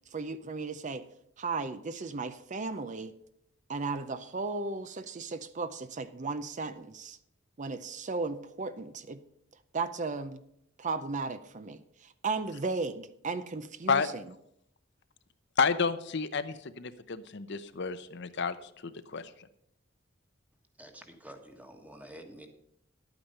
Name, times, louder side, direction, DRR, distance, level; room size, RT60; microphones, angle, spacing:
voice 1, 0.1-1.1 1.4-3.1 3.7-7.2 7.6-9.2 9.7-10.4 10.8-14.2, right 4 dB, 40° right, 12 dB, 0.6 m, -35 dB
voice 2, 15.6-19.3, left 5 dB, 60° left, 11 dB, 0.7 m, -30 dB
voice 3, 20.8-22.5, right 1 dB, 10° right, 5 dB, 1.4 m, -49 dB
11.5 x 9.0 x 5.5 m, 0.74 s
head